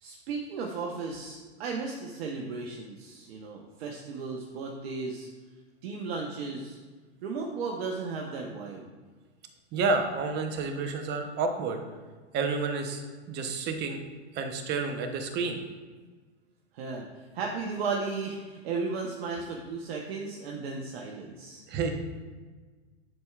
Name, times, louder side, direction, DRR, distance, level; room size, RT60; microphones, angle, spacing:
voice 1, 0.0-5.3 5.8-6.8 7.2-8.8 16.7-17.0 17.3-21.6, right 4 dB, 65° right, 0 dB, 1.0 m, -35 dB
voice 2, 9.7-11.8 12.3-13.0 13.3-14.0 14.3-15.6 21.7-21.9, right 4 dB, 30° right, 5 dB, 0.9 m, -29 dB
10.5 x 4.5 x 2.4 m, 1.4 s
hypercardioid pair, 120°, 34 cm